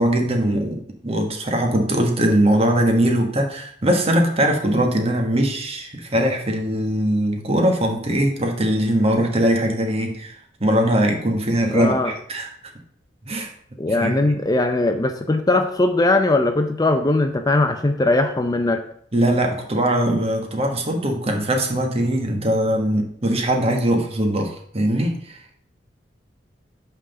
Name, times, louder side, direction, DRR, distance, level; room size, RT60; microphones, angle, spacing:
voice 1, 0.0-10.3 10.6-12.5 13.2-13.5 13.9-14.2 19.1-25.6, right 1 dB, 35° right, 3 dB, 1.4 m, -21 dB
voice 2, 11.7-12.1 13.8-18.8, left 2 dB, 20° left, 7 dB, 0.5 m, -20 dB
5.8 x 4.9 x 6.6 m, 0.62 s
head